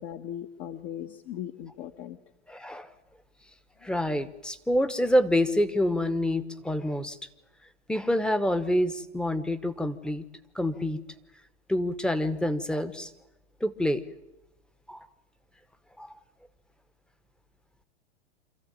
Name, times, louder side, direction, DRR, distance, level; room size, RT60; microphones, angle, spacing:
voice 1, 0.0-2.2, left 10 dB, 35° left, 6 dB, 1.1 m, -38 dB
voice 2, 2.5-2.9 3.8-7.2 7.9-10.2 10.5-11.0 11.7-13.1 13.6-14.0 14.9-15.1 16.0-16.1, left 1 dB, 5° left, 11 dB, 1.0 m, -27 dB
27.0 x 14.0 x 9.1 m, 0.96 s
hypercardioid pair, 120°, 34 cm